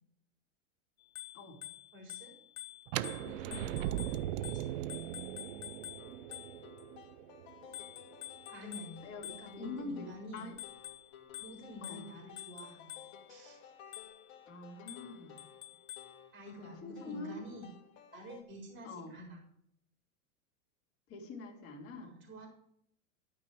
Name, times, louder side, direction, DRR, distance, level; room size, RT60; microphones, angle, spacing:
Bicycle bell, 1.0-6.8 7.7-9.8 10.4-13.3 13.9-14.3 14.9-16.2, left 14 dB, 85° left, 1.1 m, -49 dB
voice 1, 1.9-2.3 3.2-4.8 8.5-10.5 11.4-12.9 13.3-13.7 16.3-17.7 18.1-19.4 22.0-22.5, equal, 25° right, 0 dB, 3.9 m, -49 dB
sound 1, 2.9-8.7, right 13 dB, 60° right, 0.6 m, -39 dB
sound 2, 6.0-18.4, left 8 dB, 50° left, 1.9 m, -56 dB
voice 2, 9.6-10.1 10.3-10.5 11.8-12.1 14.5-15.4 16.8-17.4 18.8-19.1 21.1-22.1, left 3 dB, 30° left, 0 dB, 2.7 m, -44 dB
12.0 x 5.5 x 7.6 m, 0.70 s
hypercardioid pair, 125°, 42 cm